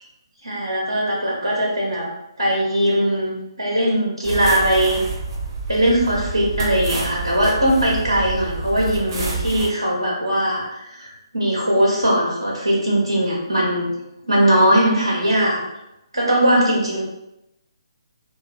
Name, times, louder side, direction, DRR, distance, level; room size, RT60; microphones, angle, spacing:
voice 1, 0.4-2.1 2.4-5.0 5.7-13.9 14.2-15.6 16.1-17.0, equal, 85° right, -5 dB, 0.6 m, -20 dB
sound 1, 4.2-9.7, right 3 dB, 40° right, 0.6 m, -28 dB
2.5 x 2.1 x 2.2 m, 0.89 s
figure-of-eight pair, 140°, 3 cm